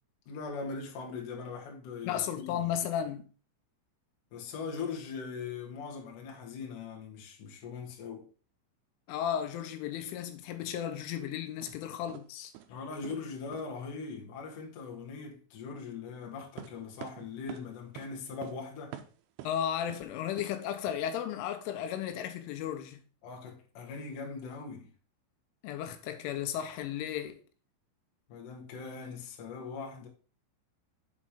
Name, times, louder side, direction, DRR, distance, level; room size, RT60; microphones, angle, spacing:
voice 1, 0.3-2.7 4.3-8.3 12.7-19.0 23.2-24.9 28.3-30.1, left 5 dB, 65° left, 2.2 m, -41 dB
voice 2, 2.0-3.3 9.1-12.5 19.4-23.0 25.6-27.4, left 10 dB, 85° left, 3.2 m, -34 dB
sound 1, 11.6-11.7 12.1-12.3 12.5-12.8 13.0-13.2 13.5-13.7 16.6-17.7 18.0-18.1 18.4-18.6 18.9-19.5 19.9-20.0 20.4-20.5 20.9-21.0, right 11 dB, 90° right, 2.5 m, -45 dB
7.4 x 4.2 x 5.0 m
omnidirectional pair, 5.6 m